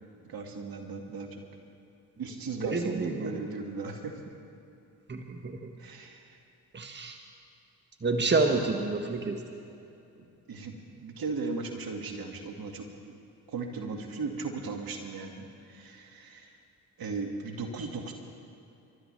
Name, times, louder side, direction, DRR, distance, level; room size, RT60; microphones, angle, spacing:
voice 1, 0.3-1.4 2.2-4.1 5.8-6.4 8.4-8.6 10.5-13.2 13.5-16.6 17.0-18.1, right 4 dB, 55° right, 3 dB, 2.1 m, -37 dB
voice 2, 2.6-3.3 5.1-5.6 6.7-7.2 8.0-9.3, right 3 dB, 25° right, 4 dB, 1.5 m, -28 dB
29.5 x 12.5 x 3.3 m, 2.8 s
hypercardioid pair, 50°, 43 cm